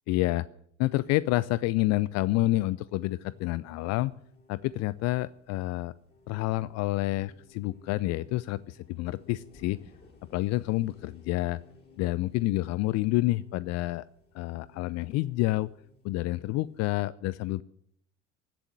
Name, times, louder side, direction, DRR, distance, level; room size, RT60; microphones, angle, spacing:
voice 1, 0.1-0.5 0.8-4.1 4.5-5.9 6.3-9.8 10.3-11.6 12.0-14.0 14.3-15.7 16.0-17.6, left 18 dB, 45° left, 19 dB, 0.5 m, -28 dB
sound 1, 2.9-16.8, left 3 dB, 25° left, 7.9 m, -58 dB
16.5 x 7.6 x 9.4 m, 0.67 s
figure-of-eight pair, 70°, 39 cm